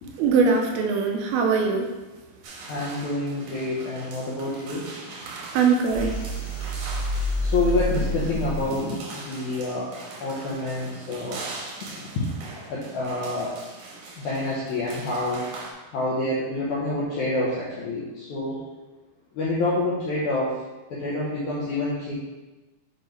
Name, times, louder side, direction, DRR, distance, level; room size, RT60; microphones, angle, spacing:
voice 1, 0.2-1.9 5.5-6.2, right 5 dB, 80° right, 2 dB, 2.4 m, -21 dB
sound 1, 2.4-15.7, right 3 dB, 65° right, 2.0 m, -41 dB
voice 2, 2.7-4.9 7.4-9.9 10.2-11.4 12.0-12.3 12.6-13.6 14.2-15.4 15.9-18.7 19.3-20.6 20.9-22.1, left 2 dB, 80° left, -7 dB, 1.7 m, -27 dB
sound 2, 5.8-8.8, equal, 35° left, 0.8 m, -28 dB
7.7 x 4.9 x 3.1 m, 1.1 s
omnidirectional pair, 4.6 m